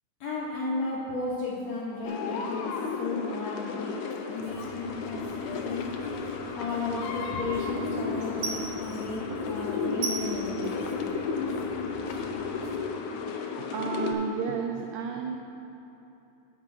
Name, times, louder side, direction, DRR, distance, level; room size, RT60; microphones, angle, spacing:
voice 1, 0.2-2.6 3.0-3.9 4.3-5.8 6.1-6.3 6.5-10.7, left 3 dB, 70° left, -5 dB, 1.7 m, -34 dB
sound 1, 2.0-14.1, left 5 dB, 85° left, 1.7 m, -33 dB
Writing, 4.4-12.8, right 3 dB, 70° right, 2.3 m, -40 dB
voice 2, 13.7-15.4, right 6 dB, 85° right, 2 dB, 1.8 m, -31 dB
8.4 x 6.3 x 5.5 m, 2.9 s
omnidirectional pair, 4.2 m